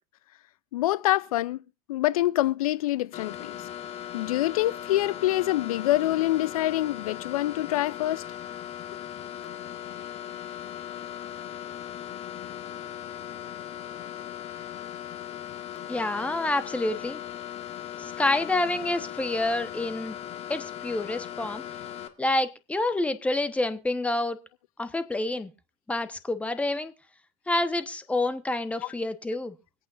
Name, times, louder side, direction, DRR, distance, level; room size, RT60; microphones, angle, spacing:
voice 1, 0.7-1.6 1.9-3.6 4.1-8.2 28.8-28.9, left 15 dB, 90° left, 0.5 m, -26 dB
sound 1, 3.1-22.1, left 11 dB, 35° left, 1.6 m, -38 dB
voice 2, 15.9-17.2 18.0-20.2 20.5-21.6 22.2-24.4 24.8-25.5 25.9-26.9 27.5-29.5, left 2 dB, 5° left, 1.1 m, -28 dB
24.5 x 8.7 x 2.5 m
supercardioid pair, 125°, 18 cm